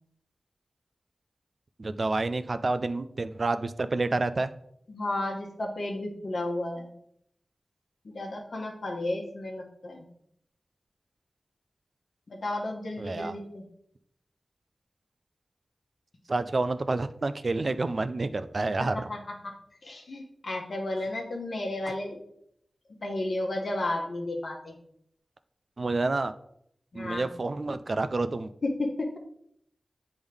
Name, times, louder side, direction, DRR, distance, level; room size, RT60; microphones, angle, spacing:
voice 1, 1.8-4.5 13.0-13.4 16.3-19.1 25.8-26.3 26.9-28.5, right 3 dB, 55° right, 11 dB, 0.4 m, -29 dB
voice 2, 4.9-6.9 8.0-10.0 12.3-13.6 18.9-19.5 19.8-22.2 23.0-24.7 26.9-27.3 28.6-29.2, left 2 dB, 70° left, 1 dB, 1.1 m, -33 dB
8.0 x 3.6 x 3.4 m, 0.71 s
wide cardioid pair, 65°, 0 cm